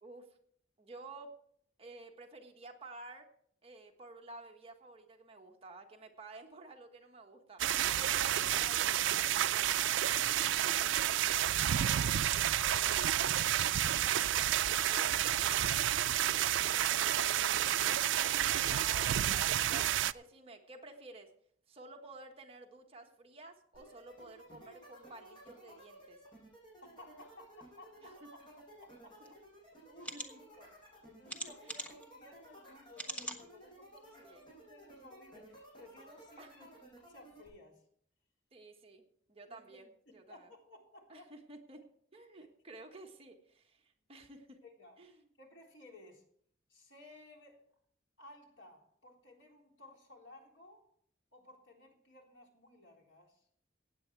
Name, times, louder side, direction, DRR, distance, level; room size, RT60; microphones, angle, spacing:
voice 1, 0.0-0.4 0.8-1.3 1.8-3.3 3.6-7.6 8.0-9.9 18.6-21.3 21.7-26.2 28.0-28.3 29.2-29.3 30.1-30.4 31.9-32.0 34.2-34.4 36.4-36.7 38.5-39.0 39.3-40.5 41.1-41.8 42.1-44.6 45.0-45.1, right 2 dB, 30° right, 2 dB, 1.4 m, -52 dB
sound 1, 7.6-20.1, right 11 dB, 75° right, 0.4 m, -30 dB
voice 2, 10.5-14.6 14.9-15.7 16.1-17.9 26.8-28.4 28.8-29.4 29.7-37.8 39.5-39.8 40.3-41.3 42.3-42.5 44.6-46.2 46.7-47.6 48.2-50.9 51.3-53.5, left 2 dB, 75° left, 0 dB, 3.7 m, -58 dB
sound 2, 23.7-37.5, right 1 dB, 25° left, 6.3 m, -56 dB
sound 3, 29.2-29.3 30.0-30.3 31.3-32.1 32.9-33.4 34.0-34.1 34.4-34.5, equal, 5° left, 1.2 m, -41 dB
16.0 x 9.0 x 4.6 m, 0.64 s
head